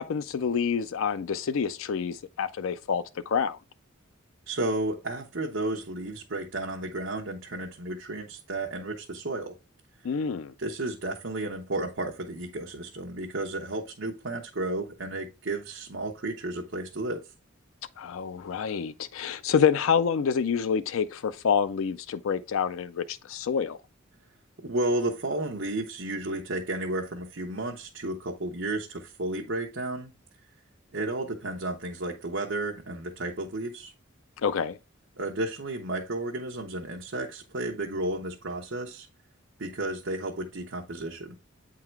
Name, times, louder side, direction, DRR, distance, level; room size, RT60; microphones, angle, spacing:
voice 1, 0.0-3.6 10.0-10.5 18.0-23.8 34.4-34.8, left 6 dB, 70° left, 0.4 m, -27 dB
voice 2, 4.5-9.5 10.6-17.3 24.6-30.1 30.9-33.9 35.2-39.1 39.6-41.4, right 2 dB, 60° right, 1.0 m, -32 dB
8.7 x 3.8 x 4.5 m
head